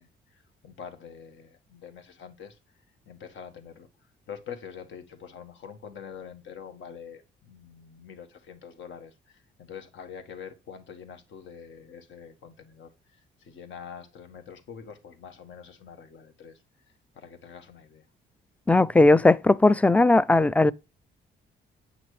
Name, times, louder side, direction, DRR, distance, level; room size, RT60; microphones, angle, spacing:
voice 1, 0.0-2.6 3.1-3.9 4.3-16.6 17.1-18.0, left 7 dB, 70° left, 1.6 m, -45 dB
voice 2, 18.7-20.7, left 2 dB, 5° left, 0.4 m, -18 dB
8.3 x 6.0 x 3.2 m
cardioid pair, 90°, 20 cm